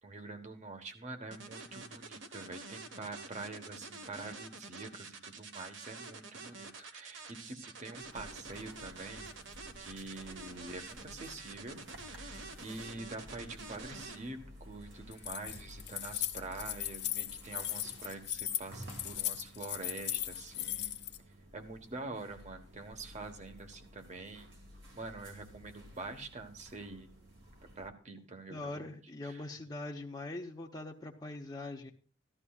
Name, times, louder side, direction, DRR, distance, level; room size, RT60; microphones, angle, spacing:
voice 1, 0.0-21.0 21.5-24.5 24.9-27.1 27.8-29.0 29.2-29.4, right 3 dB, 40° right, 6 dB, 1.2 m, -46 dB
sound 1, 1.3-14.2, right 3 dB, 90° right, 1.2 m, -48 dB
sound 2, 8.0-27.9, equal, 75° right, 2.3 m, -53 dB
Keys jangling, 15.1-21.2, left 13 dB, 65° left, 0.9 m, -37 dB
voice 2, 28.5-31.9, left 2 dB, 20° left, -3 dB, 0.8 m, -42 dB
15.0 x 12.5 x 2.4 m, 0.40 s
head